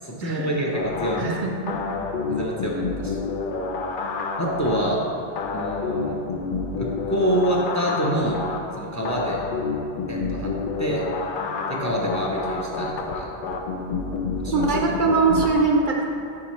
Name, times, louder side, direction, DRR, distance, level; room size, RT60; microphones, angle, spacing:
voice 1, 0.0-1.5 2.3-3.2 4.4-5.0 5.5-6.2 6.8-8.4 8.8-9.4 10.1-10.5 10.8-11.0 11.7-13.3 14.4-14.9, equal, 20° left, -2 dB, 0.5 m, -27 dB
sound 1, 0.7-15.5, left 4 dB, 60° left, 0.7 m, -29 dB
voice 2, 1.2-1.8 14.5-16.0, right 4 dB, 55° right, 1 dB, 0.7 m, -22 dB
8.4 x 5.2 x 3.1 m, 2.7 s
omnidirectional pair, 1.1 m